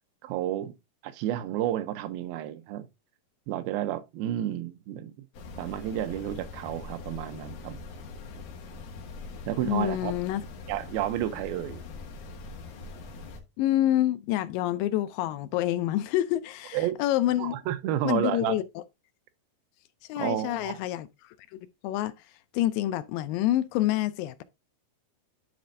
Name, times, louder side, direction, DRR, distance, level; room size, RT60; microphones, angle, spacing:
voice 1, 0.2-0.7 1.0-2.8 3.5-5.1 5.6-7.8 9.5-10.1 10.7-11.8 16.7-17.0 17.4-18.6 20.2-20.8, right 12 dB, 85° right, 2.5 m, -31 dB
sound 1, 5.3-13.4, left 3 dB, 65° left, 2.5 m, -42 dB
voice 2, 9.6-10.4 13.6-17.6 18.0-18.6 20.1-21.1 21.5-22.1 22.5-24.4, left 13 dB, 80° left, 2.2 m, -27 dB
11.5 x 4.2 x 2.6 m
omnidirectional pair, 4.2 m